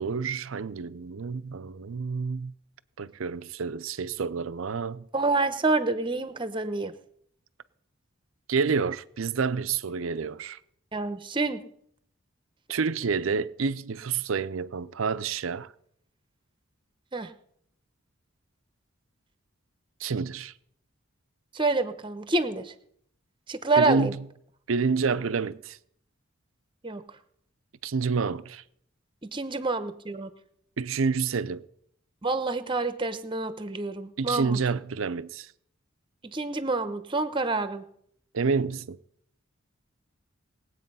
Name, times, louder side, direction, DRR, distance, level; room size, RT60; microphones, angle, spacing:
voice 1, 0.0-2.5 3.0-5.0 8.5-10.6 12.7-15.7 20.0-20.5 23.8-24.2 24.7-25.8 27.8-28.6 30.8-31.6 34.2-35.5 38.3-39.0, right 5 dB, 80° right, 0.6 m, -28 dB
voice 2, 5.1-6.9 10.9-11.6 17.1-17.3 21.5-22.7 23.5-24.1 26.8-27.0 29.2-30.3 32.2-34.6 36.3-37.8, right 3 dB, 25° right, 0.9 m, -27 dB
20.0 x 8.3 x 5.5 m
head